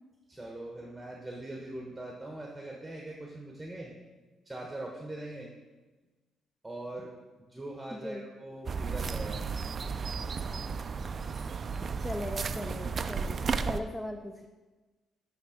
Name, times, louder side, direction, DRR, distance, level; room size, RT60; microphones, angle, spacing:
voice 1, 0.3-3.9 4.5-5.5 6.6-7.1 7.4-9.4, right 1 dB, 10° right, -1 dB, 1.0 m, -41 dB
voice 2, 7.9-8.3 12.0-14.5, left 1 dB, 15° left, 4 dB, 0.5 m, -39 dB
sound 1, 8.7-13.8, right 5 dB, 45° right, 0.4 m, -33 dB
10.0 x 3.6 x 5.0 m, 1.3 s
cardioid pair, 90°, 0 cm